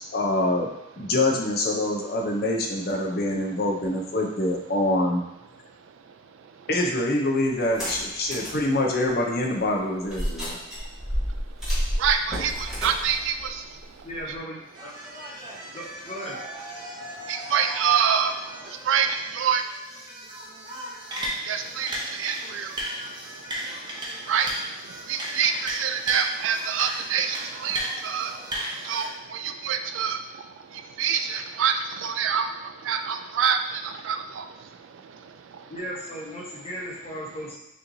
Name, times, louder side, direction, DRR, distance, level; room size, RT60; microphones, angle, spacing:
voice 1, 0.1-0.7 1.0-5.2 6.7-10.6, left 1 dB, 45° left, 0 dB, 0.6 m, -25 dB
sound 1, 7.6-8.6 9.1-9.2 10.1-14.4, equal, ahead, 1.4 m, -30 dB
voice 2, 12.0-13.6 17.3-18.3 18.9-19.6 21.5-22.7 24.3-24.5 25.1-28.3 28.8-30.2 31.0-32.5 32.8-34.5, right 7 dB, 65° right, 8 dB, 0.3 m, -26 dB
voice 3, 14.0-14.9 15.7-16.4 35.7-37.6, equal, 30° left, -4 dB, 0.9 m, -36 dB
sound 2, 14.7-29.1, equal, 20° right, 0.7 m, -36 dB
6.3 x 3.0 x 2.7 m, 0.89 s
head